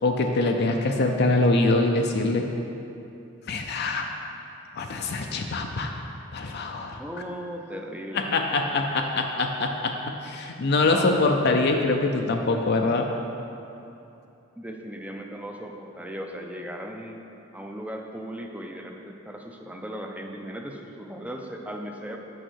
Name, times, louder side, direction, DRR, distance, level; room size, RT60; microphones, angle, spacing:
voice 1, 0.0-2.4 3.5-4.0 4.7-5.9 6.3-7.0 8.1-13.1, left 2 dB, 50° left, 3 dB, 0.5 m, -24 dB
voice 2, 7.0-8.8 10.8-11.2 14.6-17.2 17.5-22.2, equal, 5° right, 2 dB, 0.5 m, -37 dB
6.4 x 5.5 x 6.3 m, 2.8 s
head